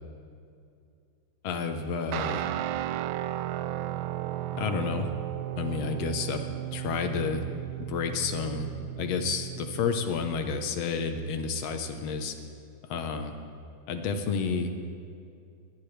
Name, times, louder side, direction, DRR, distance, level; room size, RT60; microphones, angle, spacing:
voice 1, 1.4-2.5 4.5-5.1 5.6-6.4 6.7-7.4 7.9-8.7 9.0-12.3 12.9-13.3 13.9-14.7, left 5 dB, 65° left, 6 dB, 2.0 m, -30 dB
Guitar, 2.1-10.3, right 13 dB, 80° right, 1.9 m, -34 dB
22.0 x 18.0 x 3.4 m, 2.4 s
omnidirectional pair, 3.5 m